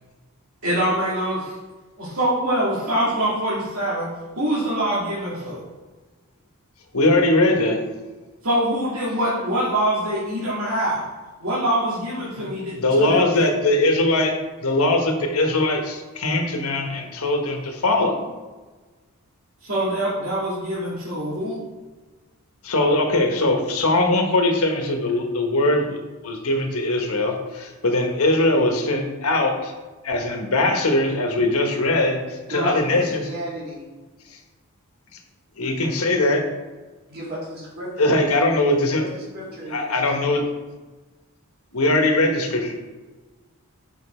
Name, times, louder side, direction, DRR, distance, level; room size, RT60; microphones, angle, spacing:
voice 1, 0.6-1.5 2.0-4.1 4.4-5.6 8.4-11.0 11.4-13.5 19.6-21.6 32.5-32.7, right 1 dB, 70° right, -8 dB, 2.2 m, -24 dB
voice 2, 6.9-7.8 12.3-12.5 12.8-14.3 14.6-18.2 22.6-26.0 26.2-29.7 30.0-32.2 32.5-33.2 35.6-36.4 38.0-39.0 39.7-40.4 41.7-42.7, left 2 dB, 80° left, 3 dB, 1.2 m, -21 dB
voice 3, 32.5-33.9 37.1-38.2 38.8-40.5, equal, 45° right, -5 dB, 2.3 m, -34 dB
6.6 x 5.8 x 4.4 m, 1.3 s
head